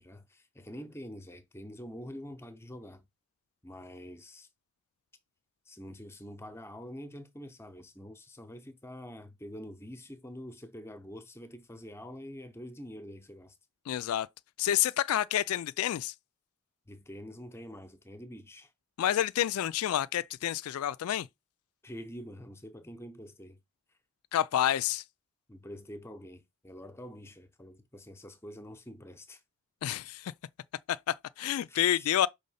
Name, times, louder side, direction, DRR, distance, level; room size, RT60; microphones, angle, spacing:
voice 1, 0.0-3.0 3.6-4.5 5.7-13.6 16.9-18.7 21.8-23.6 25.5-29.4 31.7-32.2, equal, 10° left, 0.7 m, -46 dB
voice 2, 13.9-14.3 14.6-16.1 19.0-21.3 24.3-25.0 29.8-30.3 30.9-32.3, left 11 dB, 90° left, 0.3 m, -29 dB
5.3 x 3.5 x 5.6 m
head